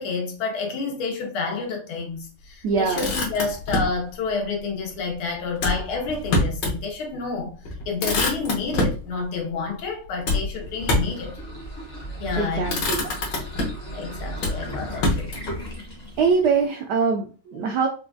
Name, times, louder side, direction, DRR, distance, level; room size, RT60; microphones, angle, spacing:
voice 1, 0.0-7.6 7.9-11.4 12.2-12.8 13.9-15.4, left 4 dB, 90° left, 1.8 m, -29 dB
voice 2, 2.6-3.1 12.4-13.0 16.2-17.9, right 5 dB, 75° right, 0.9 m, -23 dB
Motor vehicle (road), 2.7-4.0 5.6-6.8 7.2-7.3 7.6-9.0 10.2-11.2 12.1-12.3 12.7-13.9 14.4-15.6, left 2 dB, 65° left, 1.5 m, -26 dB
sound 1, 10.7-16.7, right 1 dB, 35° left, 0.7 m, -37 dB
4.3 x 2.3 x 2.5 m
omnidirectional pair, 2.2 m